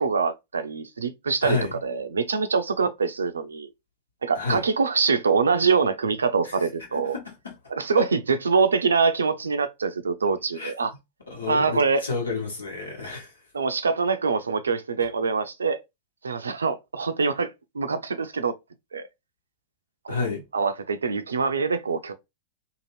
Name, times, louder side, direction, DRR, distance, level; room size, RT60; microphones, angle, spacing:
voice 1, 0.0-3.7 4.2-7.2 7.7-10.9 11.5-12.0 13.5-15.8 16.2-17.5 17.7-18.5 18.9-19.1 20.0-20.1 20.5-22.1, right 5 dB, 75° right, 0.4 m, -24 dB
voice 2, 1.4-1.7 4.3-4.6 6.4-6.6 6.9-7.5 8.0-8.1 10.5-10.7 11.3-13.3 20.1-20.4, left 4 dB, 75° left, 1.3 m, -30 dB
2.7 x 2.4 x 3.1 m
figure-of-eight pair, 90°, 0 cm